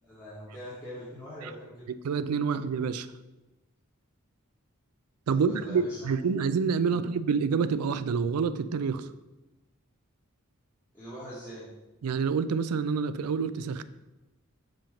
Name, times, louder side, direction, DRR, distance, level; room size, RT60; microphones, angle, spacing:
voice 1, 0.0-1.9 5.3-6.1 6.8-7.1 10.9-11.7, equal, 10° left, -10 dB, 1.4 m, -43 dB
voice 2, 2.0-3.1 5.3-9.1 12.0-13.8, right 5 dB, 80° right, 13 dB, 0.4 m, -27 dB
7.6 x 3.0 x 5.1 m, 1.0 s
head